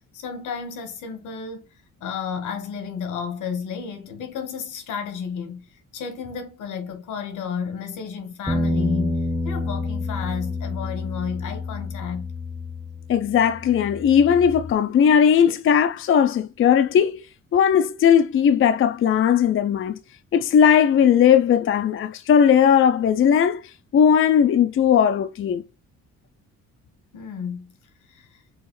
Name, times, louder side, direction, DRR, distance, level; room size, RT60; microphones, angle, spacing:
voice 1, 0.1-12.3 27.1-27.7 28.1-28.4, left 6 dB, 80° left, 1.3 m, -32 dB
sound 1, 8.5-14.7, left 2 dB, ahead, 0.8 m, -28 dB
voice 2, 13.1-17.2 17.5-20.0 20.3-23.6 23.9-25.6, left 8 dB, 45° left, 0.5 m, -18 dB
4.8 x 2.9 x 3.1 m
cardioid pair, 90°, 30 cm